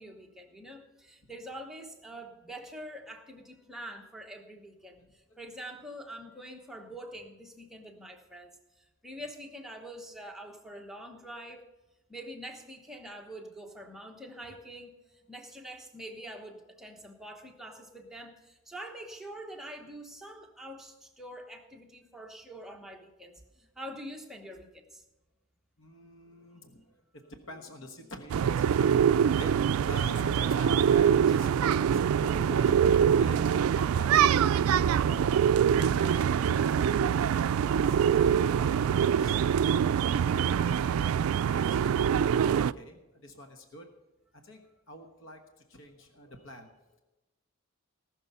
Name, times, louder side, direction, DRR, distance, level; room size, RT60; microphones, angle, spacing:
voice 1, 0.0-11.6 12.1-25.0, right 1 dB, ahead, 1 dB, 1.1 m, -45 dB
voice 2, 25.8-27.0 27.3-34.5 34.8-35.4 35.7-39.7 40.1-41.2 41.5-41.9 42.6-43.8 44.4-44.6 44.9-45.4 45.7-47.0, left 1 dB, 65° left, 4 dB, 1.3 m, -46 dB
sound 1, 28.3-42.7, right 8 dB, 85° right, 0.3 m, -24 dB
19.0 x 6.5 x 5.5 m, 1.1 s
head